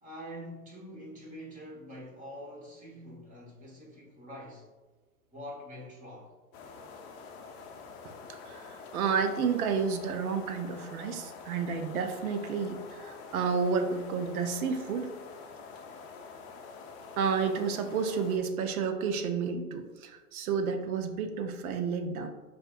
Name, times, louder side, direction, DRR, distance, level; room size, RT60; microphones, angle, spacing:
voice 1, 0.0-4.6 5.3-6.3, equal, 15° right, -4 dB, 1.3 m, -45 dB
sound 1, 6.5-18.4, left 5 dB, 45° left, 0.6 m, -47 dB
voice 2, 8.5-15.1 17.2-22.3, right 5 dB, 70° right, 7 dB, 0.7 m, -31 dB
5.5 x 2.6 x 2.5 m, 1.2 s
hypercardioid pair, 105°, 45 cm